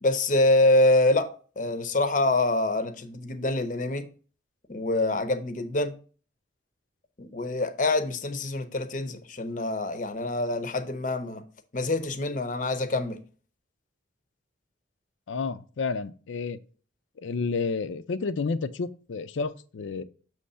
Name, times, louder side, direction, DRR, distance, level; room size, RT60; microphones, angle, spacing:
voice 1, 0.0-1.3 1.6-4.1 4.7-5.9 7.2-11.4 11.7-13.2, left 2 dB, 45° left, 0.6 m, -25 dB
voice 2, 15.3-16.6 17.2-20.0, left 4 dB, 85° left, 0.5 m, -30 dB
6.5 x 3.1 x 5.4 m
head